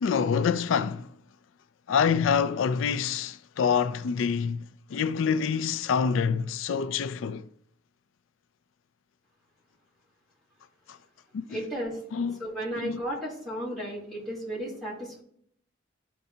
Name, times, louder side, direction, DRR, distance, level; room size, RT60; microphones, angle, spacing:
voice 1, 0.0-1.1 1.9-4.7 4.9-7.5 10.9-11.0 11.3-11.6 12.1-12.4 12.8-13.0, left 6 dB, 85° left, 0.4 m, -26 dB
voice 2, 11.5-12.0 12.4-15.2, right 1 dB, ahead, 3.2 m, -34 dB
13.0 x 4.5 x 2.7 m
head